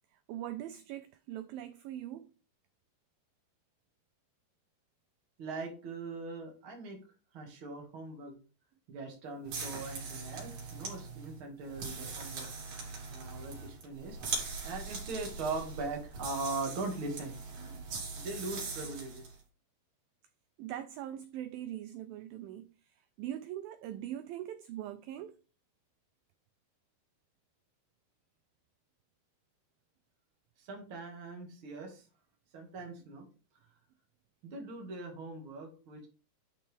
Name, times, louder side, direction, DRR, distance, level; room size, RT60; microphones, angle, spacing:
voice 1, 0.3-2.3 20.6-22.7 23.2-25.4, right 12 dB, 90° right, 2.0 m, -41 dB
voice 2, 5.4-7.0 7.3-8.4 8.9-12.5 13.1-17.4 18.1-19.4 30.6-32.1 32.5-33.3 33.5-33.8 34.4-36.1, right 3 dB, 40° right, 2.3 m, -41 dB
sound 1, 9.4-19.3, right 4 dB, 65° right, 4.6 m, -41 dB
11.5 x 4.4 x 3.5 m
omnidirectional pair, 4.7 m